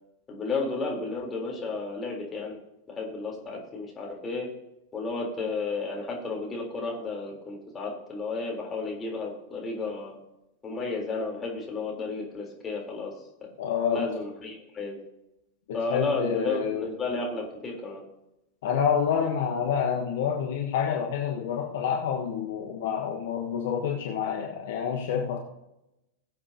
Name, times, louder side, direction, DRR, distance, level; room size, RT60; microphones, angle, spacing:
voice 1, 0.3-2.6 3.0-4.5 4.9-10.2 10.6-13.1 13.9-15.0 15.7-18.0, left 3 dB, 20° left, -2 dB, 3.6 m, -32 dB
voice 2, 13.6-14.1 15.7-16.9 18.6-25.4, left 7 dB, 55° left, 0 dB, 1.4 m, -28 dB
20.5 x 7.5 x 2.8 m, 0.88 s
figure-of-eight pair, 90°, 0 cm